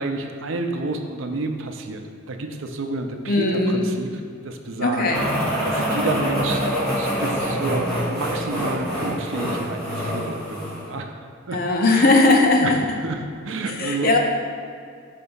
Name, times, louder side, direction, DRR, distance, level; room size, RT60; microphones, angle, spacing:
voice 1, 0.0-2.0 2.3-5.1 5.6-6.7 6.9-11.1 11.5-11.6 11.9-12.2 12.6-13.2 13.4-14.2, right 3 dB, 75° right, 5 dB, 0.5 m, -29 dB
voice 2, 3.3-3.9 4.8-5.2 11.5-12.8 13.7-14.2, left 2 dB, 45° left, 2 dB, 0.6 m, -18 dB
sound 1, 5.1-10.9, equal, 5° left, 1.3 m, -25 dB
5.2 x 3.4 x 5.4 m, 2.3 s
head